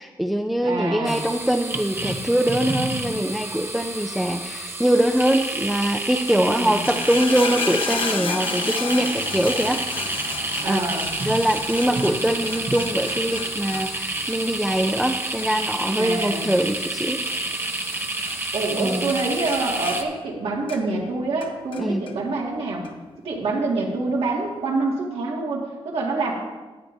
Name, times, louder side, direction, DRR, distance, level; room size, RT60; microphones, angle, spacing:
voice 1, 0.0-10.1 10.6-10.8 11.2-17.2 18.8-19.1 21.8-22.0, right 1 dB, ahead, 4 dB, 0.4 m, -23 dB
voice 2, 0.6-1.2 6.5-6.8 10.6-11.1 16.0-16.5 18.5-22.8 23.2-26.3, right 3 dB, 85° right, -2 dB, 2.0 m, -26 dB
sound 1, 1.0-20.0, right 2 dB, 25° right, 0.8 m, -29 dB
sound 2, 6.8-18.0 18.3-18.8 19.1-21.1 21.4-22.2 22.8-22.9, left 5 dB, 65° left, 0.8 m, -33 dB
13.0 x 9.1 x 2.7 m, 1.3 s
wide cardioid pair, 130°, 10 cm